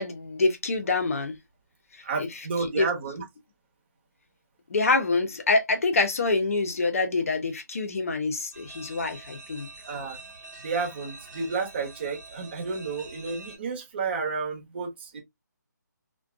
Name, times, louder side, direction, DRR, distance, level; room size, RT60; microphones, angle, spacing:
voice 1, 0.0-1.3 2.2-2.3 2.8-2.9 4.7-9.7, left 3 dB, 45° left, 0.5 m, -26 dB
voice 2, 2.0-3.2 9.9-10.2 10.6-15.2, right 4 dB, 35° right, 0.9 m, -31 dB
sound 1, 8.5-13.6, right 3 dB, 60° right, 1.1 m, -45 dB
2.5 x 2.2 x 2.3 m
figure-of-eight pair, 165°, 10 cm